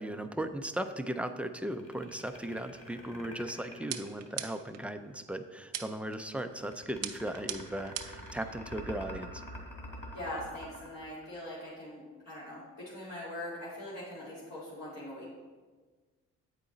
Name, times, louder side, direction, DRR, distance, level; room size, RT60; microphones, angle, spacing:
voice 1, 0.0-9.4, right 1 dB, 5° right, 7 dB, 0.4 m, -37 dB
sound 1, 1.7-4.9 6.3-11.8, left 1 dB, 20° left, 2.1 m, -46 dB
sound 2, 3.9-4.8 5.7-6.2 7.0-8.3, right 10 dB, 60° right, 0.6 m, -39 dB
voice 2, 10.1-15.3, left 1 dB, 60° left, -8 dB, 2.1 m, -42 dB
8.3 x 4.9 x 3.9 m, 1.4 s
cardioid pair, 90°, 30 cm